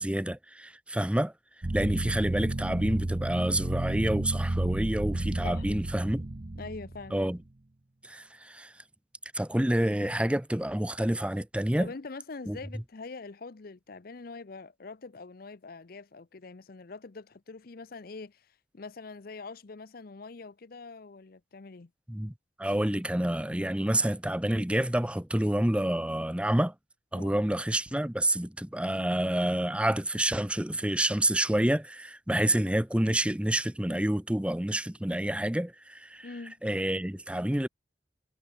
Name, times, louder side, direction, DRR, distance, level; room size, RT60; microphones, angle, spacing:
voice 1, 0.0-1.3 1.7-6.2 7.1-7.4 8.0-8.7 9.3-11.9 12.5-12.6 22.1-22.3 22.6-26.7 27.1-36.3 36.6-37.7, right 1 dB, 5° right, 0.7 m, -28 dB
sound 1, 1.6-7.4, right 2 dB, 35° right, 0.7 m, -32 dB
voice 2, 6.6-7.2 11.8-21.9 27.1-27.4 36.2-36.6, left 3 dB, 50° left, 0.6 m, -44 dB
head